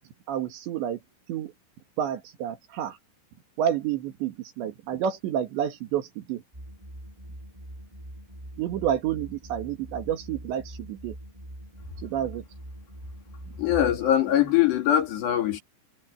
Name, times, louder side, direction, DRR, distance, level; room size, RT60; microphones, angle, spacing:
voice 1, 0.3-1.0 1.3-1.5 2.0-3.0 3.6-6.4 8.6-11.1 12.0-12.4, right 10 dB, 80° right, 4.3 m, -29 dB
sound 1, 6.5-13.8, right 1 dB, 10° right, 3.4 m, -43 dB
voice 2, 13.6-15.6, left 11 dB, 70° left, 5.0 m, -22 dB
omnidirectional pair, 5.1 m